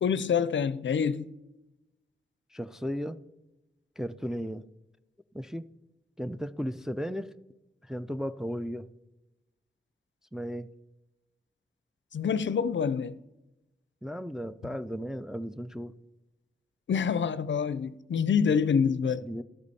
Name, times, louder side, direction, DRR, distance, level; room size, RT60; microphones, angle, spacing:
voice 1, 0.0-1.3 12.1-13.2 16.9-19.2, left 6 dB, 70° left, 0.4 m, -26 dB
voice 2, 2.5-3.2 4.0-4.6 5.3-5.6 6.2-7.3 7.9-8.9 10.3-10.7 14.0-15.9 19.2-19.4, equal, 5° right, 0.3 m, -35 dB
12.0 x 8.4 x 4.1 m
wide cardioid pair, 100°, 20 cm